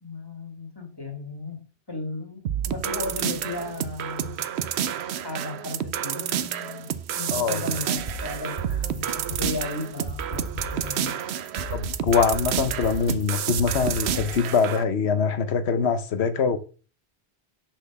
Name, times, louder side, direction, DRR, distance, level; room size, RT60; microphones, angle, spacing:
voice 1, 0.0-4.4 5.2-11.2, left 3 dB, 20° left, 1.9 m, -35 dB
sound 1, 2.5-14.8, right 9 dB, 85° right, 0.9 m, -30 dB
sound 2, 8.0-14.5, right 2 dB, 45° right, 1.5 m, -36 dB
voice 2, 11.7-16.6, left 5 dB, 85° left, 1.2 m, -23 dB
6.7 x 6.0 x 5.8 m
omnidirectional pair, 1.1 m